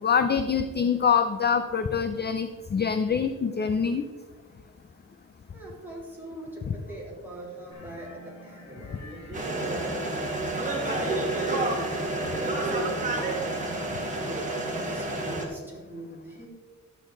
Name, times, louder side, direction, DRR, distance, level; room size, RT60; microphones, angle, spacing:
voice 1, 0.0-4.0 6.7-6.8, left 6 dB, 30° left, 9 dB, 0.4 m, -25 dB
voice 2, 5.5-10.1 10.7-13.4 14.3-16.5, right 1 dB, 5° right, -5 dB, 3.0 m, -41 dB
sound 1, 7.7-14.4, equal, 55° left, 3.1 m, -48 dB
sound 2, 9.3-15.5, right 2 dB, 20° right, 2.0 m, -29 dB
11.5 x 8.4 x 3.8 m, 1.5 s
wide cardioid pair, 155°, 33 cm